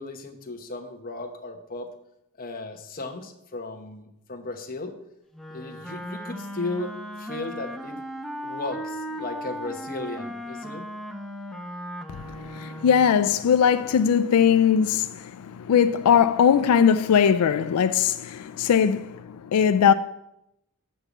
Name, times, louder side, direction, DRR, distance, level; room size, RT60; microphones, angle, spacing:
voice 1, 0.0-1.9 2.4-4.9 5.5-8.0 8.4-10.9, left 2 dB, 40° left, 1.1 m, -35 dB
Wind instrument woodwind instrument, 5.3-13.2, equal, ahead, 0.6 m, -37 dB
voice 2, 12.1-19.9, left 7 dB, 90° left, 0.4 m, -20 dB
6.8 x 5.5 x 7.2 m
head